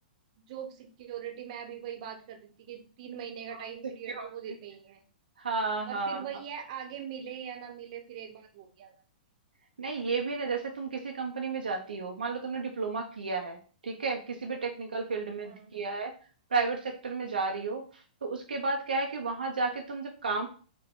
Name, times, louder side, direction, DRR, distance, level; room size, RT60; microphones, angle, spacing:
voice 1, 0.5-5.0 5.9-8.9 15.4-15.7, right 9 dB, 50° right, 4 dB, 0.8 m, -41 dB
voice 2, 5.4-6.2 9.8-13.6 13.8-16.1 16.5-17.8 18.2-20.5, right 4 dB, 80° right, 2 dB, 0.5 m, -32 dB
3.6 x 2.2 x 3.6 m, 0.39 s
hypercardioid pair, 115°, 5 cm